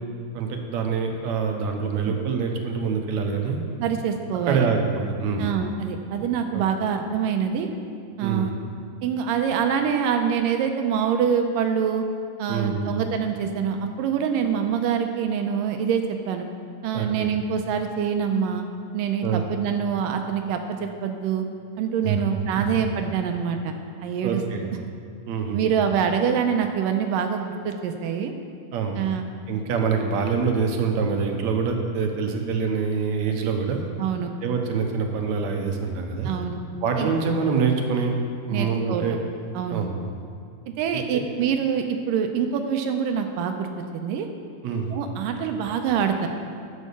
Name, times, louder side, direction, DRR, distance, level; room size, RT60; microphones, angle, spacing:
voice 1, 0.3-3.6 4.5-5.5 6.5-6.6 8.2-8.5 12.5-12.9 16.9-17.3 19.2-19.4 22.0-22.2 22.6-22.9 24.2-24.6 25.3-25.6 28.7-29.0 29.5-33.9 34.4-36.3 36.8-38.2 38.5-39.2 39.7-39.9 41.1-41.2 44.6-44.9, right 5 dB, 65° right, 3 dB, 2.0 m, -25 dB
voice 2, 3.8-4.7 5.4-7.7 8.2-8.5 9.0-12.0 12.4-16.5 16.8-18.6 18.9-21.5 21.8-23.7 24.0-24.4 25.5-28.3 29.0-29.3 34.0-34.3 36.2-36.6 37.0-37.1 38.5-39.0 39.6-39.8 40.8-44.3 44.9-46.3, right 7 dB, 80° right, 5 dB, 2.3 m, -25 dB
11.0 x 8.2 x 6.9 m, 2.3 s
omnidirectional pair, 4.0 m